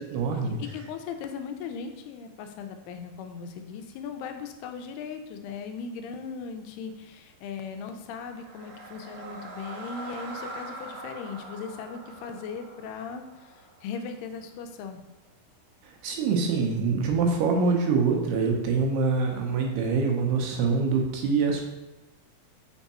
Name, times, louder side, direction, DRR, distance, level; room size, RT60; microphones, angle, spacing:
voice 1, 0.0-0.6 15.8-21.6, right 4 dB, 90° right, 1 dB, 2.9 m, -25 dB
voice 2, 0.6-13.5 13.8-15.0, left 6 dB, 90° left, 6 dB, 2.6 m, -38 dB
sound 1, 8.2-14.4, right 2 dB, 70° right, 2.6 m, -43 dB
6.4 x 3.5 x 4.2 m, 0.98 s
omnidirectional pair, 4.5 m